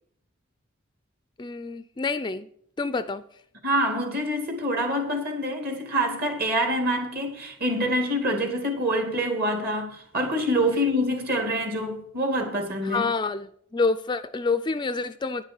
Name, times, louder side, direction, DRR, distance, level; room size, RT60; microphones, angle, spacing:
voice 1, 1.4-2.5 2.8-3.2 12.8-15.4, left 4 dB, 20° left, 0.4 m, -27 dB
voice 2, 3.6-13.1, equal, 50° right, 2.6 m, -26 dB
10.5 x 6.6 x 7.1 m
head